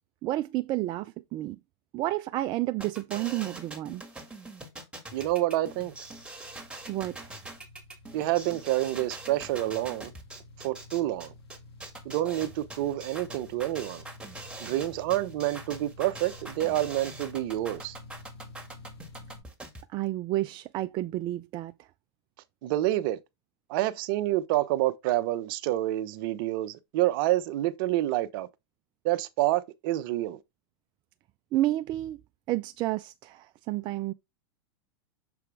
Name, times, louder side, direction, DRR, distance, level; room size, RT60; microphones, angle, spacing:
voice 1, 0.2-1.6 1.9-4.0 6.9-7.3 19.9-21.9 31.5-32.2 32.5-34.1, right 16 dB, 35° right, 0.4 m, -30 dB
sound 1, 2.8-19.8, right 2 dB, 10° right, 1.9 m, -43 dB
voice 2, 5.1-5.9 8.1-10.1 10.6-11.3 12.0-14.0 14.6-18.0 22.6-23.2 23.7-28.5 29.0-30.4, right 15 dB, 55° right, 0.8 m, -28 dB
sound 2, 5.5-19.4, left 2 dB, 80° left, 2.2 m, -50 dB
6.9 x 4.7 x 3.4 m
hypercardioid pair, 115°, 13 cm